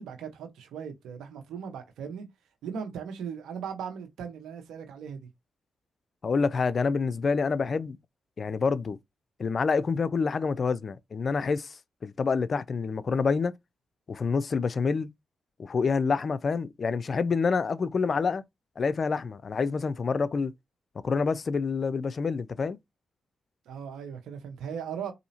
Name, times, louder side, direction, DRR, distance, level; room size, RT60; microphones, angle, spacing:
voice 1, 0.0-2.3 2.6-5.3 23.7-25.1, right 7 dB, 85° right, 1.0 m, -38 dB
voice 2, 6.2-8.0 8.4-9.0 9.4-11.7 12.0-13.5 14.1-15.1 15.6-18.4 18.8-20.5 21.0-22.8, left 5 dB, 50° left, 0.4 m, -27 dB
4.2 x 2.7 x 2.8 m
cardioid pair, 60°, 0 cm